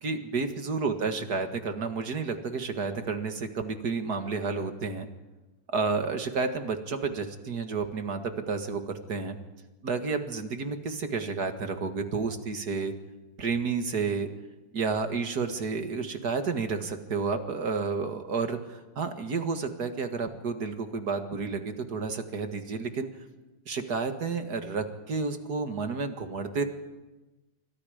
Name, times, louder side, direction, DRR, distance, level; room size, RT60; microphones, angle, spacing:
voice 1, 0.0-5.1 5.7-9.4 9.8-12.9 13.4-14.3 14.7-23.1 23.7-26.6, right 4 dB, 60° right, 6 dB, 2.3 m, -31 dB
28.0 x 24.5 x 5.1 m, 1.1 s
omnidirectional pair, 2.0 m